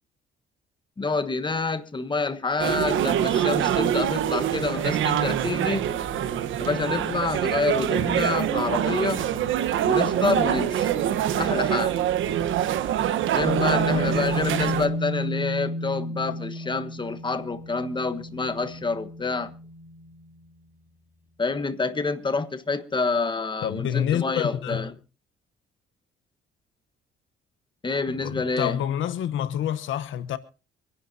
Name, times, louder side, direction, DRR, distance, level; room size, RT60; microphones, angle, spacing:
voice 1, 1.0-5.9 6.6-9.2 9.8-10.9 11.4-12.0 13.3-19.5 21.4-24.9 27.8-28.8, left 3 dB, 25° left, 1.3 m, -27 dB
sound 1, 2.6-14.9, right 10 dB, 80° right, 1.2 m, -25 dB
sound 2, 13.4-20.2, left 1 dB, 10° right, 4.7 m, -32 dB
voice 2, 23.6-24.9 28.1-30.4, left 10 dB, 75° left, 1.0 m, -27 dB
25.5 x 11.0 x 2.8 m
cardioid pair, 90°, 20 cm